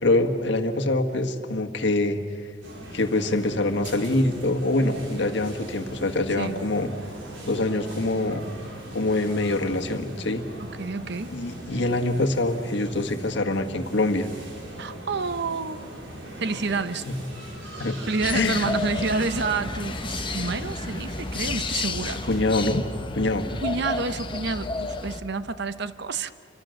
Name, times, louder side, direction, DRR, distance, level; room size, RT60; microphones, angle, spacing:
voice 1, 0.0-2.2 2.9-6.9 7.5-8.4 8.9-10.4 11.3-14.3 17.8-18.0 18.3-18.7 22.3-22.8 23.1-23.5, left 2 dB, 65° left, 1.7 m, -24 dB
sound 1, 2.6-22.5, right 1 dB, 85° right, 5.3 m, -40 dB
voice 2, 6.3-6.6 10.6-11.4 14.8-16.1 16.4-17.1 18.1-22.2 23.6-26.3, right 4 dB, 65° right, 0.9 m, -29 dB
sound 2, 18.2-25.2, left 3 dB, 25° left, 1.1 m, -31 dB
29.5 x 24.5 x 6.6 m
head